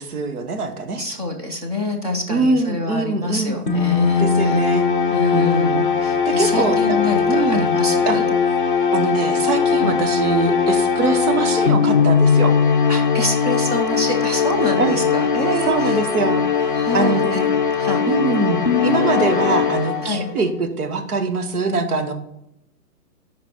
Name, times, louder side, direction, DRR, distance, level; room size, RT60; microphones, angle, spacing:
voice 1, 0.0-1.0 2.3-3.6 4.2-4.8 5.3-7.0 7.3-7.7 8.1-8.2 8.9-12.6 14.8-15.0 15.7-16.4 16.9-17.5 18.1-22.1, right 3 dB, 65° right, 8 dB, 1.2 m, -23 dB
voice 2, 1.0-4.7 5.1-8.2 9.8-10.0 12.9-16.0 16.7-17.4 17.8-18.0 20.0-20.3, left 1 dB, 25° right, 2 dB, 0.7 m, -26 dB
sound 1, 3.7-20.4, left 6 dB, 35° left, 0.5 m, -19 dB
5.8 x 5.2 x 4.3 m, 0.82 s
hypercardioid pair, 170°, 47 cm